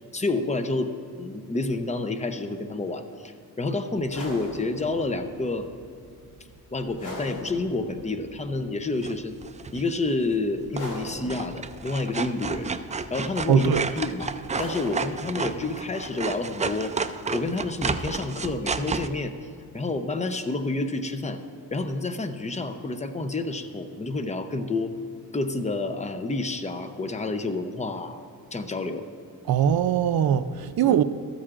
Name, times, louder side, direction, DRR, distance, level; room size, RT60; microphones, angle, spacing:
voice 1, 0.1-5.7 6.7-9.4 9.7-12.7 13.1-14.3 14.6-16.9 17.3-19.3 19.7-21.4 21.7-25.0 25.3-28.2 28.5-29.0 30.9-31.0, left 2 dB, 20° left, 8 dB, 0.7 m, -29 dB
sound 1, 4.0-19.3, left 1 dB, 50° left, 2.8 m, -43 dB
sound 2, 9.0-9.9 10.8-11.0 11.3-19.1, right 4 dB, 20° right, 0.3 m, -31 dB
voice 2, 13.5-13.8 29.5-31.0, right 9 dB, 70° right, 12 dB, 0.6 m, -21 dB
14.0 x 13.0 x 2.5 m, 2.3 s
cardioid pair, 100°, 38 cm